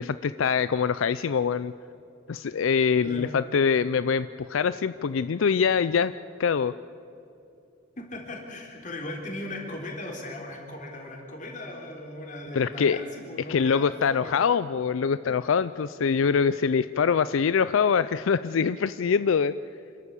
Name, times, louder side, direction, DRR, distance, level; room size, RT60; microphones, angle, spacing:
voice 1, 0.0-1.7 2.3-6.1 6.4-6.7 12.5-13.0 13.5-19.5, left 6 dB, 80° left, 14 dB, 0.4 m, -24 dB
voice 2, 3.0-3.3 8.0-14.4 16.2-16.3, left 1 dB, 40° left, 1 dB, 3.8 m, -38 dB
27.5 x 13.0 x 8.3 m, 2.7 s
head